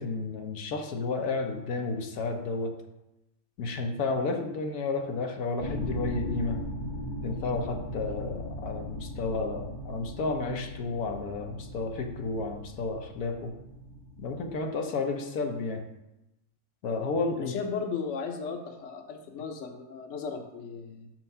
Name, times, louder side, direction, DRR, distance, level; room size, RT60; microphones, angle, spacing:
voice 1, 0.0-2.7 3.6-6.6 7.2-13.5 14.2-15.8 16.8-17.5, left 3 dB, 80° left, 4 dB, 1.3 m, -32 dB
sound 1, 5.6-14.6, left 1 dB, 30° left, 0.5 m, -38 dB
voice 2, 17.4-21.1, left 5 dB, 60° left, 4 dB, 1.1 m, -36 dB
6.4 x 4.5 x 5.4 m, 0.93 s
omnidirectional pair, 1.6 m